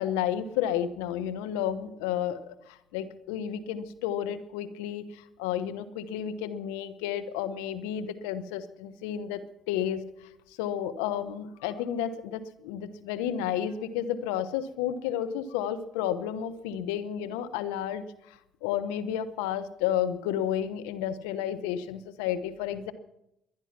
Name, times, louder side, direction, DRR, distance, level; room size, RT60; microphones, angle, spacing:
voice 1, 0.0-10.0 10.5-22.9, left 10 dB, 90° left, 12 dB, 0.9 m, -32 dB
20.5 x 10.5 x 5.9 m, 0.84 s
supercardioid pair, 65°, 0 cm